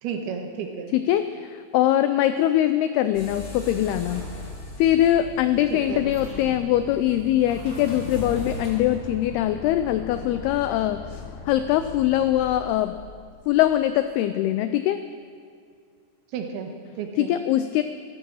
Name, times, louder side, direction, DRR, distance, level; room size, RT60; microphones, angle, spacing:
voice 1, 0.0-1.0 5.7-6.1 16.3-17.3, right 6 dB, 70° right, 4 dB, 3.1 m, -32 dB
voice 2, 0.9-4.2 4.8-13.0 13.5-15.0 17.2-17.8, left 12 dB, 90° left, 10 dB, 2.2 m, -22 dB
sound 1, 3.1-9.0, left 2 dB, 40° left, 3.2 m, -37 dB
sound 2, 8.2-14.1, left 6 dB, 70° left, 2.9 m, -41 dB
16.0 x 13.5 x 6.3 m, 2.2 s
omnidirectional pair, 5.1 m